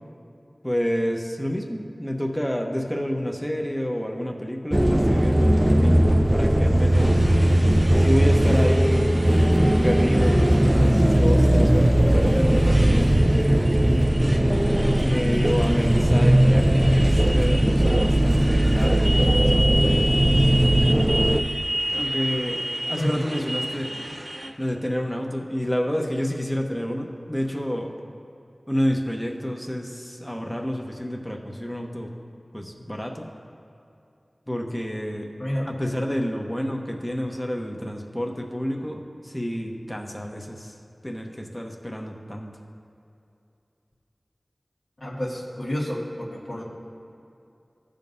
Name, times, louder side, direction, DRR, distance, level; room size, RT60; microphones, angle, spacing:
voice 1, 0.6-7.2 8.0-9.0 9.8-13.8 15.0-19.8 21.9-23.9 24.6-27.9 28.7-32.1 32.5-33.3 34.5-35.3 35.7-40.7 41.0-42.5, equal, 15° left, 1 dB, 0.9 m, -29 dB
sound 1, 4.7-21.4, right 1 dB, 25° right, 0.4 m, -18 dB
Motorcycle, 6.9-24.5, right 1 dB, 40° right, 0.9 m, -32 dB
voice 2, 45.0-46.6, equal, 65° left, -4 dB, 1.6 m, -29 dB
15.5 x 5.2 x 2.7 m, 2.7 s
wide cardioid pair, 50°, 0 cm